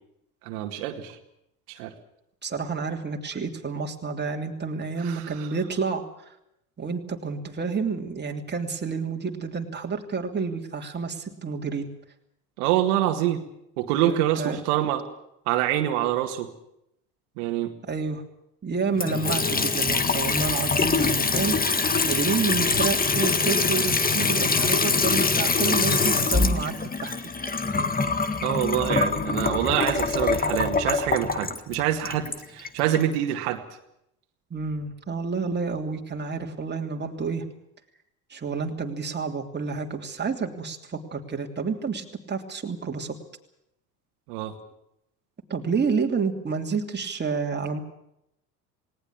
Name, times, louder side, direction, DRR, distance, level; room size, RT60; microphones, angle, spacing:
voice 1, 0.4-1.2 1.7-1.9 5.0-5.5 12.6-13.4 13.8-15.1 15.5-16.5 17.4-17.7 28.4-33.6 44.3-44.5, right 12 dB, 80° right, 5 dB, 2.1 m, -26 dB
voice 2, 2.4-6.0 6.8-11.9 14.1-14.6 17.9-18.2 18.6-27.1 34.5-37.4 38.3-43.1 45.5-47.8, right 5 dB, 25° right, 2 dB, 3.0 m, -29 dB
Water tap faucet / Sink (filling or washing) / Trickle dribble, 18.9-33.1, left 4 dB, 20° left, 1.6 m, -24 dB
19.0 x 18.5 x 8.7 m, 0.79 s
supercardioid pair, 90°, 44 cm